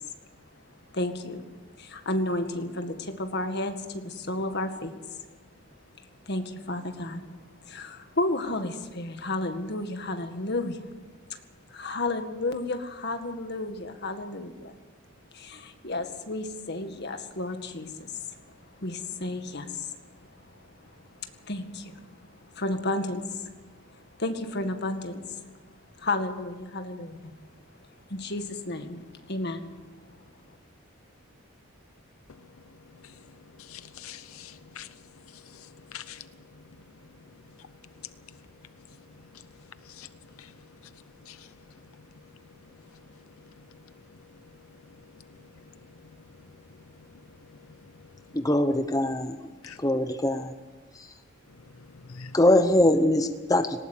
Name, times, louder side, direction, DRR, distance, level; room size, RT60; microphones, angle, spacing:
voice 1, 0.9-1.5 1.8-4.9 6.3-7.4 7.6-10.8 11.3-11.4 11.7-14.8 15.3-18.5 18.8-21.2 21.4-23.5 23.9-25.2 26.0-27.3 28.1-29.7, left 2 dB, 50° left, 6 dB, 1.9 m, -32 dB
voice 2, 33.7-34.9 35.9-36.2 40.0-40.1 41.3-41.4 49.6-49.8 52.1-52.3, left 8 dB, 85° left, 13 dB, 0.7 m, -43 dB
voice 3, 48.3-49.4 49.8-50.5 50.9-51.1 52.3-53.8, left 1 dB, 15° left, 8 dB, 0.8 m, -22 dB
19.0 x 18.0 x 8.3 m, 1.3 s
head